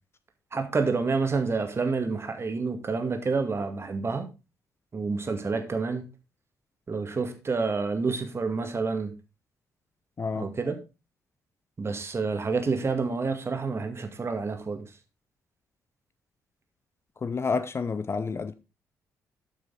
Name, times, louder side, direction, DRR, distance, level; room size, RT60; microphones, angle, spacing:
voice 1, 0.5-4.3 4.9-6.1 6.9-9.1 10.4-10.8 11.8-14.9, right 4 dB, 35° right, 2.0 m, -28 dB
voice 2, 10.2-10.5 17.2-18.5, left 4 dB, 35° left, 0.7 m, -29 dB
12.5 x 6.2 x 3.9 m
figure-of-eight pair, 40°, 8 cm